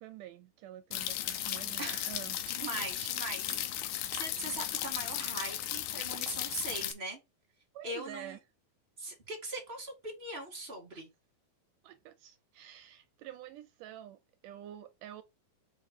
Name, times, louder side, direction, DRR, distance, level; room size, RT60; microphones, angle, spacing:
voice 1, 0.0-2.8 7.7-8.4 10.9-11.0 11.8-15.2, right 12 dB, 80° right, 1.9 m, -48 dB
sound 1, 0.9-6.9, left 12 dB, 85° left, 2.6 m, -36 dB
voice 2, 1.8-2.2 2.4-7.2 7.8-8.4 9.0-11.1, right 2 dB, 25° right, 1.4 m, -41 dB
5.7 x 4.4 x 5.0 m
omnidirectional pair, 4.2 m